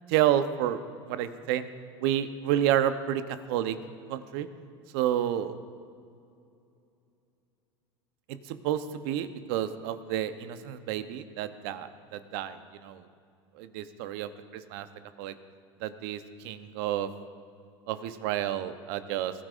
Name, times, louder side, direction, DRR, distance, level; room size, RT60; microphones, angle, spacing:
voice 1, 0.1-0.8 1.1-1.7 2.0-3.2 3.5-3.8 4.1-4.5 4.9-5.5 8.5-13.0 13.6-14.9 15.2-15.3 15.8-17.1 17.9-19.3, right 11 dB, 70° right, 11 dB, 0.8 m, -30 dB
20.0 x 12.5 x 2.5 m, 2.5 s
hypercardioid pair, 95°, 13 cm